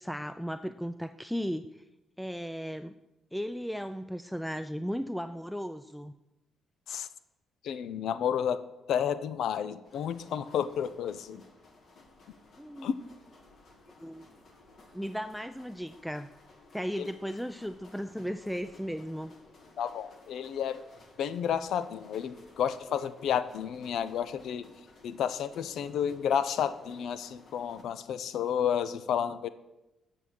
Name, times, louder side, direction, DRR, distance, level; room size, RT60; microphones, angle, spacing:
voice 1, 0.0-1.6 2.2-2.9 3.3-6.1 12.6-12.9 14.0-14.3 14.9-16.3 16.7-19.3, equal, ahead, 10 dB, 0.3 m, -36 dB
voice 2, 7.6-11.4 12.8-12.9 17.0-17.1 19.8-20.8 21.2-24.7 25.0-29.5, left 8 dB, 75° left, 14 dB, 0.5 m, -31 dB
sound 1, 9.8-27.8, left 3 dB, 55° left, 1.7 m, -57 dB
7.5 x 7.0 x 6.4 m, 0.96 s
cardioid pair, 90°, 0 cm